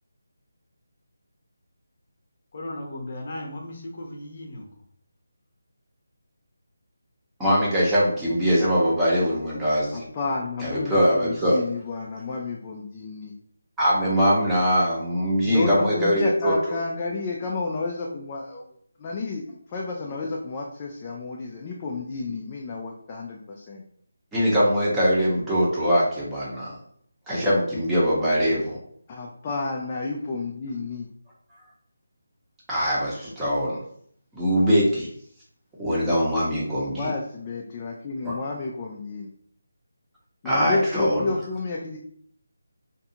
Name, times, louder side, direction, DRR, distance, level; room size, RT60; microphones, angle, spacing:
voice 1, 2.5-4.7, left 1 dB, 45° left, 1 dB, 0.7 m, -36 dB
voice 2, 7.4-10.1 10.6-11.6 13.8-16.8 24.3-26.7 27.3-28.8 32.7-33.8 34.3-35.1 35.8-37.1 38.2-38.4 40.4-41.2, equal, 5° right, -8 dB, 0.7 m, -22 dB
voice 3, 9.9-13.3 15.4-18.7 19.0-23.8 29.1-31.1 36.9-39.3 40.4-42.0, left 3 dB, 25° left, -2 dB, 0.3 m, -31 dB
2.6 x 2.3 x 2.8 m, 0.62 s
figure-of-eight pair, 165°, 0 cm